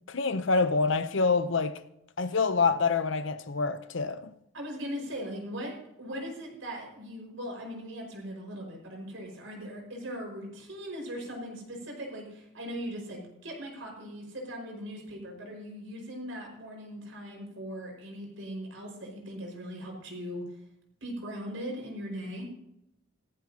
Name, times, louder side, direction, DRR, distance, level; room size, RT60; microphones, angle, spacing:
voice 1, 0.1-1.8 2.2-4.3, left 4 dB, 65° left, 0.7 m, -26 dB
voice 2, 4.5-20.5 21.0-22.5, equal, 70° right, 5.3 m, -39 dB
17.0 x 14.0 x 2.9 m
head